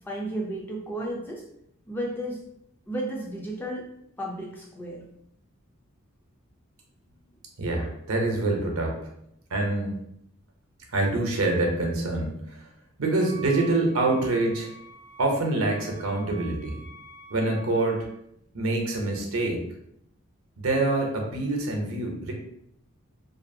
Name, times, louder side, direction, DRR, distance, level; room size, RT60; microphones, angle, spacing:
voice 1, 0.0-1.4 1.9-2.4 2.9-3.9 4.2-5.0, right 1 dB, 10° left, -2 dB, 0.3 m, -33 dB
voice 2, 7.6-9.1 9.5-10.0 10.9-12.6 13.0-14.7 15.2-16.8 17.3-18.1 18.5-19.6 20.6-22.3, right 2 dB, 80° right, 1 dB, 0.7 m, -26 dB
Wind instrument woodwind instrument, 13.2-18.1, right 3 dB, 45° left, 0.7 m, -47 dB
2.6 x 2.3 x 2.6 m, 0.74 s
head